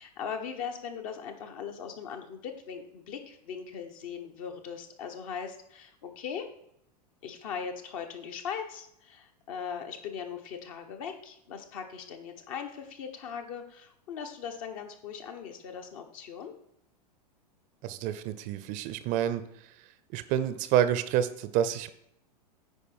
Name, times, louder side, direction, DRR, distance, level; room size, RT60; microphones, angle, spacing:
voice 1, 0.0-6.5 7.2-16.5, left 7 dB, 55° left, 5 dB, 1.3 m, -39 dB
voice 2, 17.8-19.4 20.1-21.9, right 10 dB, 40° right, 13 dB, 0.6 m, -28 dB
9.6 x 4.8 x 4.5 m, 0.75 s
figure-of-eight pair, 95°, 21 cm